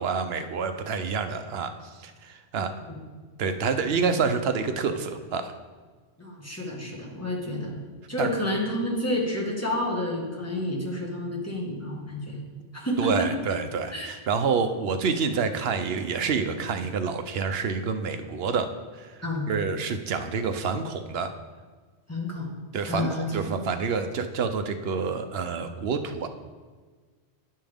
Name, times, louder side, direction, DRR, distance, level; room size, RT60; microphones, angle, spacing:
voice 1, 0.0-1.7 2.0-2.7 3.4-5.5 8.2-8.3 13.0-18.7 18.9-19.2 19.5-21.3 22.7-26.3, right 5 dB, 70° right, 8 dB, 0.8 m, -28 dB
voice 2, 6.2-7.8 8.1-12.4 12.7-13.3 13.9-14.1 19.2-19.5 22.1-22.5 22.9-23.7, left 1 dB, 15° left, -2 dB, 1.4 m, -30 dB
10.5 x 5.6 x 3.5 m, 1.4 s
omnidirectional pair, 1.1 m